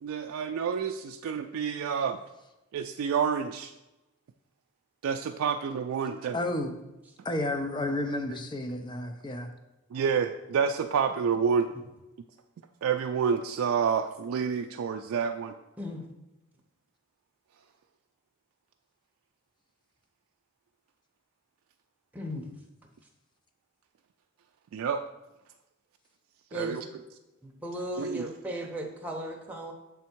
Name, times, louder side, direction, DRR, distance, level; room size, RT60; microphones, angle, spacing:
voice 1, 0.0-2.2 2.7-3.7 5.0-6.4 9.9-11.7 12.8-15.5 24.7-25.0 26.5-26.8 28.0-28.2, right 6 dB, 90° right, 5 dB, 0.3 m, -28 dB
voice 2, 6.3-6.7 7.2-9.5, left 1 dB, 20° left, 6 dB, 0.5 m, -31 dB
voice 3, 22.1-22.4 26.5-26.8 27.4-29.7, equal, 10° right, 0 dB, 0.8 m, -36 dB
7.3 x 3.4 x 4.4 m, 0.99 s
head